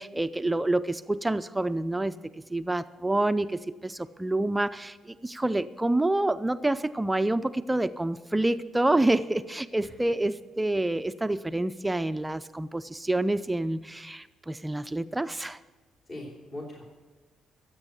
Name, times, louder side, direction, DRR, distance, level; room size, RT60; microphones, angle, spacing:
voice 1, 0.0-2.2 2.5-15.6, right 2 dB, 10° right, 11 dB, 0.4 m, -27 dB
voice 2, 16.1-16.9, left 1 dB, 45° left, -3 dB, 3.1 m, -41 dB
14.0 x 8.2 x 8.2 m, 1.3 s
cardioid pair, 90°, 0 cm